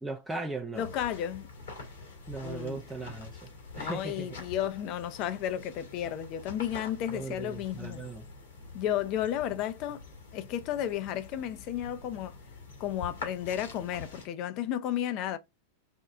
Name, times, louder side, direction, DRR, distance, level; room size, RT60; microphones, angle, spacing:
voice 1, 0.0-0.9 2.3-3.5 3.8-4.4 7.1-8.3, right 3 dB, 5° right, 0.5 m, -38 dB
sound 1, 0.7-14.3, left 3 dB, 75° left, 1.8 m, -46 dB
voice 2, 0.8-1.5 2.4-2.8 3.8-8.0 8.7-10.1 10.3-12.4 12.8-15.4, left 11 dB, 45° left, 0.5 m, -33 dB
4.4 x 2.2 x 3.5 m
hypercardioid pair, 95°, 0 cm